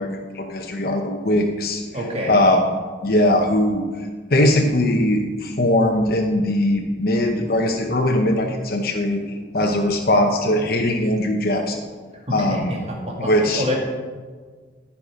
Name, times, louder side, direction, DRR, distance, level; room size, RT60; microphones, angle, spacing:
voice 1, 0.0-1.8 2.3-2.6 3.0-3.9 4.3-9.2 9.5-11.8 12.3-12.7 13.2-13.7, left 1 dB, 50° left, 3 dB, 0.9 m, -20 dB
voice 2, 1.9-2.3 12.3-13.8, left 1 dB, 35° right, -2 dB, 2.1 m, -27 dB
14.5 x 5.8 x 5.0 m, 1.5 s
head